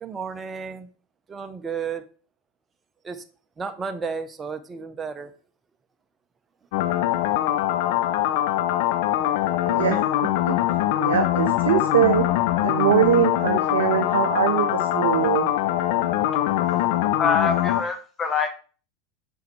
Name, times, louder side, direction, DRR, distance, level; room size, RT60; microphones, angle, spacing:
voice 1, 0.0-0.9 1.3-2.0 3.0-3.2 3.6-5.3, right 5 dB, 25° right, 8 dB, 0.7 m, -32 dB
sound 1, 6.7-17.8, left 13 dB, 60° left, 0.5 m, -23 dB
voice 2, 9.7-10.0 10.5-10.6 11.0-12.3 12.6-15.5, right 9 dB, 70° right, 7 dB, 0.5 m, -22 dB
voice 3, 17.2-18.5, left 5 dB, 25° left, 6 dB, 1.2 m, -24 dB
5.8 x 5.4 x 3.2 m, 0.38 s
figure-of-eight pair, 85°, 0 cm